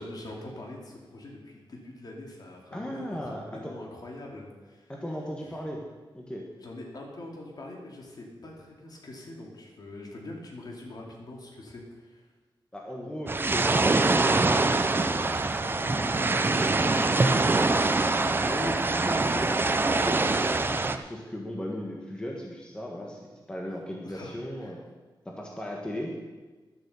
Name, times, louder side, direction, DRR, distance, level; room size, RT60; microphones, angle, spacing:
voice 1, 0.0-4.9 5.4-5.6 6.6-12.2 15.6-16.8 24.0-24.7, left 1 dB, 50° left, -1 dB, 2.6 m, -44 dB
voice 2, 2.7-3.7 4.9-5.8 6.1-6.4 12.7-14.7 17.1-17.3 17.6-17.8 18.2-24.8 25.2-26.1, equal, 10° left, -1 dB, 1.4 m, -37 dB
sound 1, 13.3-21.0, right 3 dB, 25° right, 0.6 m, -24 dB
12.0 x 7.9 x 7.0 m, 1.3 s
wide cardioid pair, 135°, 9 cm